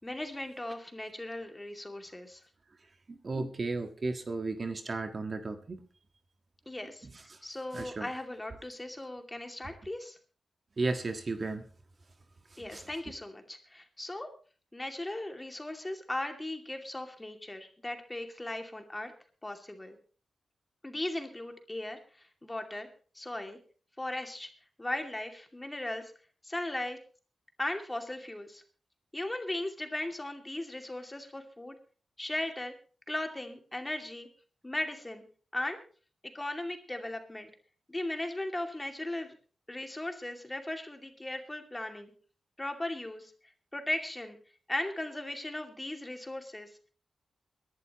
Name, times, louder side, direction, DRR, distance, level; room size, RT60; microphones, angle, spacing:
voice 1, 0.0-2.4 6.7-7.1 7.4-10.1 12.6-14.3 14.7-19.1 19.4-20.0 20.8-22.0 22.4-22.9 23.2-23.6 24.0-24.5 24.8-26.1 26.5-27.0 27.6-28.6 29.1-31.7 32.2-32.7 33.1-34.3 34.6-35.2 35.5-35.8 36.3-37.5 37.9-39.3 39.7-42.1 42.6-43.2 43.7-44.4 44.7-46.7, left 1 dB, 20° left, 5 dB, 2.5 m, -37 dB
voice 2, 3.1-5.8 7.0-7.4 7.7-8.1 10.8-11.6 12.6-12.9, right 3 dB, 45° right, 6 dB, 1.6 m, -34 dB
23.0 x 11.5 x 3.0 m, 0.39 s
cardioid pair, 75°, 0 cm